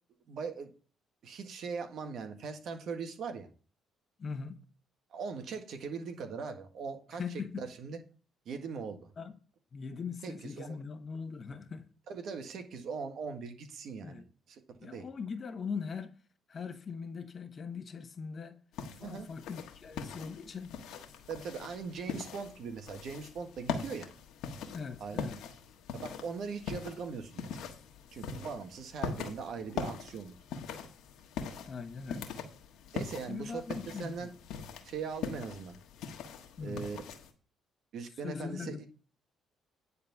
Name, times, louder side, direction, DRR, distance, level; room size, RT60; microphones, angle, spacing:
voice 1, 0.3-0.7 1.2-3.5 5.1-7.2 7.6-8.0 8.5-9.0 10.2-10.8 12.1-15.1 19.0-19.3 21.3-24.1 25.0-25.3 25.9-27.5 28.1-30.4 32.9-34.3 34.8-35.8 36.6-37.0 37.9-38.9, right 5 dB, 70° right, 1.7 m, -40 dB
voice 2, 4.2-4.6 7.2-7.7 9.2-9.3 9.7-11.9 14.0-14.3 14.8-16.1 16.5-18.6 18.9-20.8 24.7-25.4 31.7-32.3 33.3-34.3 36.6-36.9 38.2-38.9, left 5 dB, 45° left, 1.2 m, -40 dB
sound 1, 18.7-37.3, left 6 dB, 80° left, 1.4 m, -42 dB
10.0 x 4.2 x 7.1 m
cardioid pair, 80°, 0 cm